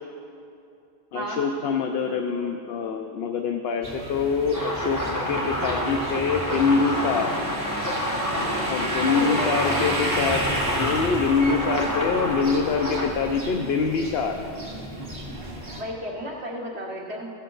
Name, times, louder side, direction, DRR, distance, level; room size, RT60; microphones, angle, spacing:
voice 1, 1.1-5.0 5.3-7.3 8.7-10.4 10.8-14.4, left 5 dB, 70° left, 4 dB, 0.8 m, -25 dB
sound 1, 3.8-15.8, right 1 dB, 60° right, 1.7 m, -32 dB
sound 2, 4.5-13.1, equal, 20° left, 1.1 m, -29 dB
voice 2, 9.1-9.8 15.8-17.3, equal, 80° right, -8 dB, 1.6 m, -32 dB
15.5 x 7.1 x 3.9 m, 2.6 s
omnidirectional pair, 1.1 m